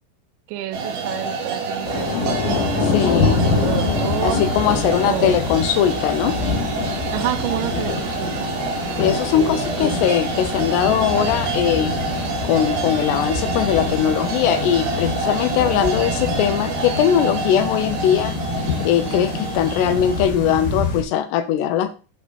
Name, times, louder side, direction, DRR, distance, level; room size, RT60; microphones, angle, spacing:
voice 1, 0.5-4.4 5.0-5.4 7.1-8.5, right 14 dB, 90° right, 8 dB, 3.0 m, -29 dB
sound 1, 0.7-20.2, right 4 dB, 65° right, 2.6 m, -28 dB
Thunder / Rain, 1.8-21.0, left 4 dB, 60° left, 2.4 m, -26 dB
voice 2, 2.8-3.4 4.2-6.4 9.0-11.9 12.4-18.3 18.8-22.0, left 10 dB, 80° left, 10 dB, 2.6 m, -20 dB
sound 2, 3.4-20.8, equal, 35° right, 2.1 m, -35 dB
8.5 x 3.8 x 5.2 m, 0.36 s
omnidirectional pair, 5.2 m